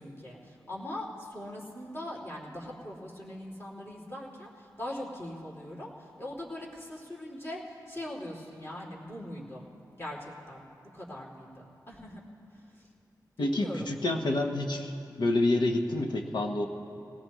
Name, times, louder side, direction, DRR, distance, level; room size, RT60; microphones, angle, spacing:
voice 1, 0.0-9.7 10.0-10.6 10.9-12.2 12.5-12.9 13.4-13.9, left 1 dB, 35° left, -4 dB, 3.0 m, -41 dB
voice 2, 13.4-14.9 15.2-16.7, left 2 dB, 85° left, 3 dB, 1.1 m, -28 dB
20.5 x 17.5 x 3.1 m, 2.6 s
wide cardioid pair, 75°, 7 cm